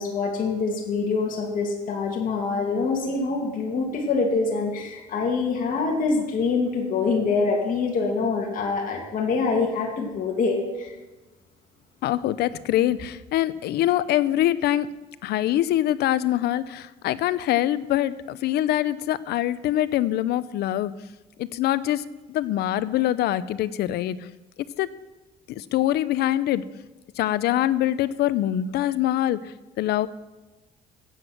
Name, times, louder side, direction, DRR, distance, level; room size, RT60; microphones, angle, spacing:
voice 1, 0.0-10.9, left 4 dB, 55° left, -1 dB, 2.4 m, -25 dB
voice 2, 12.0-14.9 15.2-20.9 21.4-24.3 24.8-24.9 25.5-26.6 27.2-30.1, left 13 dB, 75° left, 16 dB, 0.6 m, -24 dB
15.5 x 8.1 x 6.0 m, 1.1 s
cardioid pair, 110°, 17 cm